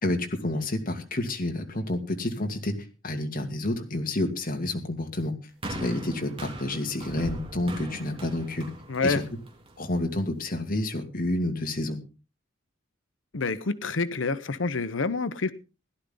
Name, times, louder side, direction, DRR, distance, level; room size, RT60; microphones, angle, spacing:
voice 1, 0.0-2.7 3.0-5.3 5.7-8.7 9.0-9.2 9.8-12.0, left 1 dB, 45° left, 2.5 m, -29 dB
sound 1, 5.6-10.0 10.8-10.9, right 1 dB, 30° right, 3.2 m, -39 dB
voice 2, 8.9-9.2 13.3-15.5, left 3 dB, 75° left, 0.9 m, -27 dB
17.0 x 12.0 x 3.9 m
head